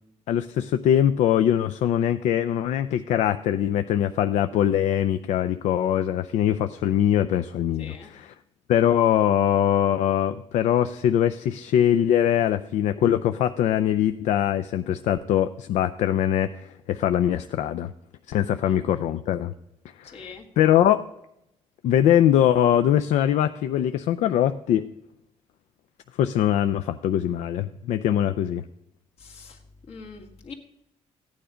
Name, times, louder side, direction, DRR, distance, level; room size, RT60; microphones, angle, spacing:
voice 1, 0.3-8.3 8.7-17.9 18.3-19.5 20.0-20.2 20.6-21.0 21.8-24.9 26.2-28.6, left 10 dB, 80° left, 9 dB, 0.5 m, -22 dB
voice 2, 7.8-8.1 18.6-18.8 20.0-20.5 29.2-29.6 29.9-30.5, left 4 dB, 60° left, 2 dB, 2.0 m, -43 dB
15.0 x 9.3 x 5.0 m, 0.83 s
cardioid pair, 145°, 12 cm